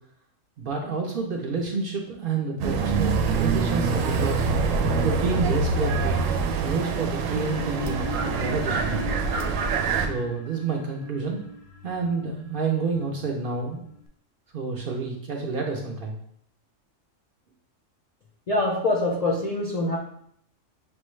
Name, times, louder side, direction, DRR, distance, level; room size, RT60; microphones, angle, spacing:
voice 1, 0.6-4.5 5.0-6.2 6.6-9.0 10.0-11.4 11.8-13.9 14.5-16.2, right 4 dB, 60° right, 0 dB, 0.6 m, -29 dB
sound 1, 2.6-10.1, right 4 dB, 85° right, 1.0 m, -25 dB
sound 2, 7.2-14.1, left 3 dB, 90° left, 1.0 m, -41 dB
voice 2, 18.5-20.0, left 2 dB, 55° left, -2 dB, 0.4 m, -24 dB
6.1 x 2.2 x 3.1 m, 0.68 s
omnidirectional pair, 1.3 m